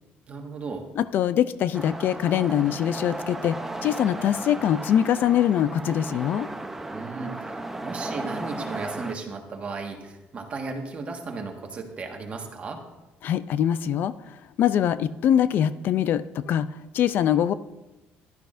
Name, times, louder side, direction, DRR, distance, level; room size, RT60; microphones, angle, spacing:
voice 1, 0.3-0.8 6.9-12.8, right 4 dB, 30° right, 2 dB, 1.5 m, -35 dB
voice 2, 1.0-3.6 3.8-6.5 13.2-17.5, left 10 dB, 55° left, 15 dB, 0.4 m, -23 dB
sound 1, 1.7-9.2, right 2 dB, 10° right, 0.7 m, -35 dB
15.0 x 11.5 x 2.6 m, 1.0 s
cardioid pair, 140°, 4 cm